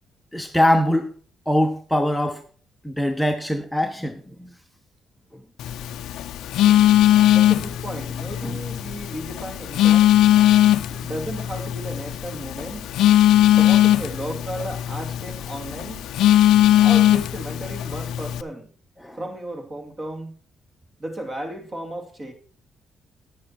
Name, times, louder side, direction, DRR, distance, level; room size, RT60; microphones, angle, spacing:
voice 1, 0.3-1.1 1.5-2.4 2.8-4.5 6.7-6.9 8.4-8.5 19.0-19.2, left 1 dB, 5° left, 0.8 m, -22 dB
Telephone, 5.6-18.4, left 12 dB, 85° left, 0.5 m, -19 dB
voice 2, 7.3-10.1 10.9-12.9 13.5-16.1 16.8-18.7 19.2-20.3 21.0-22.3, right 1 dB, 35° right, 2.8 m, -34 dB
9.5 x 9.3 x 4.5 m
cardioid pair, 90°, 0 cm